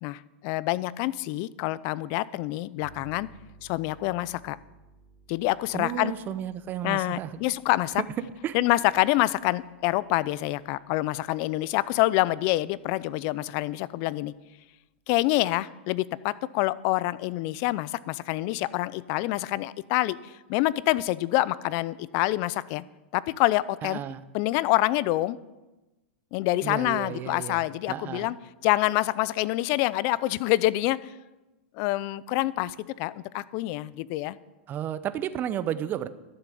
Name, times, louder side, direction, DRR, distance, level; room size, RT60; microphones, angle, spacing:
voice 1, 0.0-3.3 3.6-4.6 5.3-6.1 6.8-8.0 8.5-14.3 15.1-22.8 23.1-24.0 24.3-25.4 26.3-28.4 28.6-31.0 31.8-34.4, left 17 dB, 50° left, 19 dB, 0.5 m, -26 dB
sound 1, 2.8-12.1, right 3 dB, 20° left, 2.4 m, -58 dB
voice 2, 5.7-7.3 8.4-8.6 23.8-24.2 26.6-27.6 27.9-28.4 34.7-36.1, right 10 dB, 30° right, 13 dB, 0.8 m, -32 dB
12.0 x 6.9 x 9.2 m, 1.1 s
hypercardioid pair, 115°, 6 cm